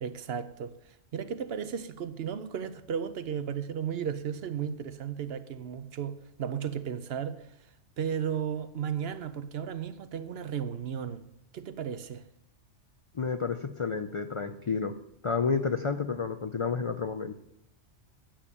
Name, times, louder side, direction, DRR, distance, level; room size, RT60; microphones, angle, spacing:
voice 1, 0.0-7.5 8.0-11.2 11.5-12.2, right 8 dB, 65° right, 0.8 m, -34 dB
voice 2, 13.1-14.9 15.2-17.3, left 5 dB, 60° left, 0.3 m, -30 dB
8.8 x 7.3 x 6.8 m
omnidirectional pair, 1.2 m